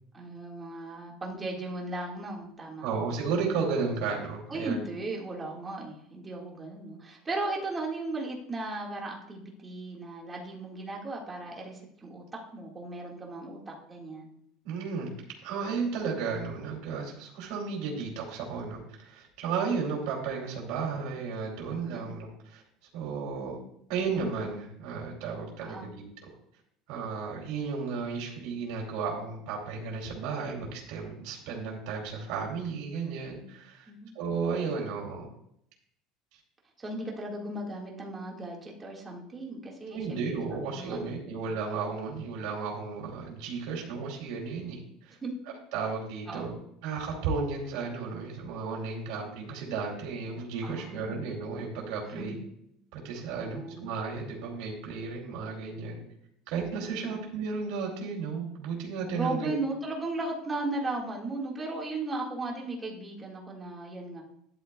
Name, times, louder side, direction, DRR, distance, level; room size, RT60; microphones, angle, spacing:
voice 1, 0.1-2.9 4.5-12.2 12.5-14.3 21.9-22.0 25.6-25.9 33.9-34.1 36.8-40.2 40.5-41.3 45.2-45.3 46.3-46.5 50.6-51.2 52.1-52.4 53.4-53.9 57.0-57.1 59.1-64.2, right 2 dB, 15° right, -2 dB, 1.7 m, -36 dB
voice 2, 2.8-4.8 14.6-15.1 15.4-22.6 22.9-23.6 23.9-26.1 26.9-33.9 34.1-35.3 36.3-36.4 39.9-45.2 45.7-46.6 46.8-52.4 52.9-56.0 56.5-59.5, right 5 dB, 65° right, -2 dB, 2.7 m, -34 dB
13.0 x 10.5 x 2.3 m, 0.74 s
cardioid pair, 175°, 0 cm